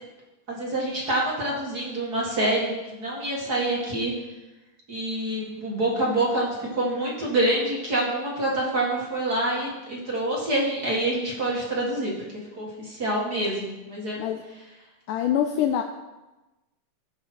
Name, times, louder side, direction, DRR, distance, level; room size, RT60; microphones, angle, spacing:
voice 1, 0.5-4.1 4.9-12.1 12.6-14.2, right 1 dB, 35° right, -4 dB, 1.7 m, -26 dB
voice 2, 15.1-15.8, left 10 dB, 80° left, 5 dB, 2.0 m, -24 dB
16.0 x 5.4 x 4.3 m, 1.1 s
omnidirectional pair, 3.7 m